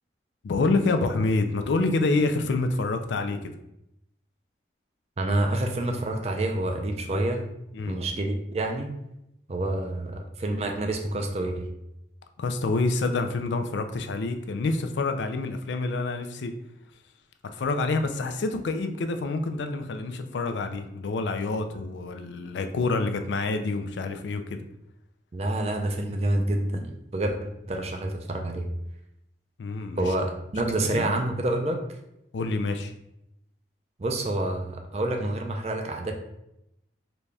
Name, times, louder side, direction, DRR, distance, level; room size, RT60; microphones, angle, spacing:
voice 1, 0.4-3.5 7.7-8.0 12.4-16.5 17.5-24.6 29.6-30.1 30.8-31.2 32.3-32.9, left 3 dB, 85° left, 7 dB, 0.4 m, -27 dB
voice 2, 5.2-7.5 7.9-8.9 9.5-11.7 25.3-26.9 27.1-28.7 30.0-31.8 34.0-36.1, right 1 dB, 35° right, 4 dB, 0.4 m, -28 dB
4.0 x 2.3 x 3.2 m, 0.83 s
head